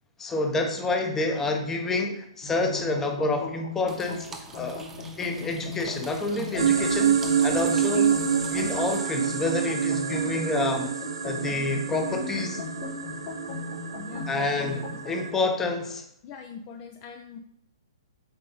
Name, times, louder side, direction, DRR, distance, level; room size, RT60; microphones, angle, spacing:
voice 1, 0.2-4.3 4.5-4.8 5.2-8.1 8.5-10.9 11.2-12.6 14.3-16.0, left 2 dB, 10° left, 4 dB, 0.9 m, -28 dB
sound 1, 2.4-15.2, left 4 dB, 50° left, 2.8 m, -38 dB
sound 2, 3.9-9.0, right 4 dB, 10° right, 0.6 m, -46 dB
sound 3, 6.6-15.3, right 8 dB, 80° right, 0.9 m, -27 dB
voice 2, 7.4-8.1 13.9-15.0 16.2-17.4, left 6 dB, 35° left, 5 dB, 0.6 m, -42 dB
8.0 x 4.3 x 3.9 m, 0.72 s
hypercardioid pair, 140°, 3 cm